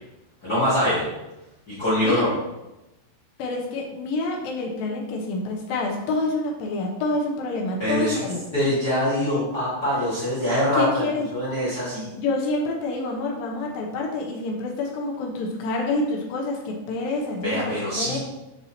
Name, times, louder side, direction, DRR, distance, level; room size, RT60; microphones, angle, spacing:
voice 1, 0.4-1.1 1.7-2.3 7.8-8.3 8.5-11.0 11.3-12.1 17.4-18.2, equal, 50° left, -10 dB, 1.1 m, -23 dB
voice 2, 3.4-8.4 10.7-11.3 12.1-18.2, left 2 dB, 80° left, 0 dB, 2.1 m, -27 dB
8.2 x 4.1 x 2.8 m, 0.98 s
omnidirectional pair, 4.8 m